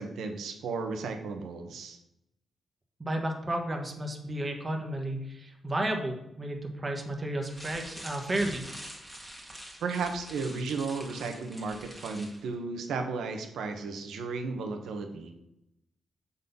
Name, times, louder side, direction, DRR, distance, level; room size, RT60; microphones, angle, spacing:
voice 1, 0.0-2.0 9.8-15.3, right 4 dB, 90° right, 6 dB, 1.1 m, -34 dB
voice 2, 3.0-8.6, right 1 dB, 20° right, 2 dB, 1.2 m, -32 dB
sound 1, 7.5-12.5, equal, 5° right, 1.5 m, -45 dB
7.5 x 4.1 x 5.4 m, 0.83 s
cardioid pair, 120°, 0 cm